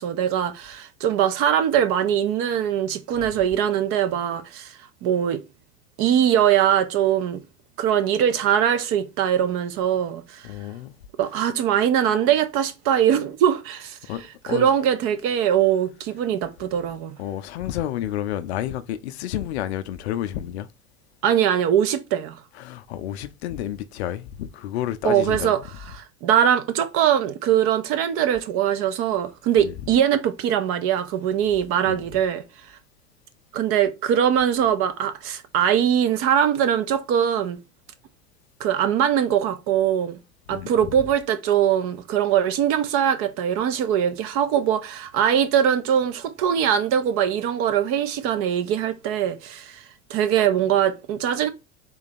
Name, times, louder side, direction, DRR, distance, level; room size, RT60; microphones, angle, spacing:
voice 1, 0.0-4.7 5.0-5.4 6.0-7.4 7.8-10.4 11.2-17.2 21.2-22.4 25.0-25.6 25.9-32.4 33.5-37.6 38.6-40.2 40.5-49.8 50.1-51.5, right 9 dB, 35° right, 0.6 m, -22 dB
voice 2, 10.4-10.9 14.1-14.7 17.2-20.7 22.6-25.5 29.6-29.7 31.8-32.0 40.5-40.7, left 12 dB, 55° left, 0.6 m, -30 dB
3.8 x 2.9 x 4.2 m
figure-of-eight pair, 85°, 40 cm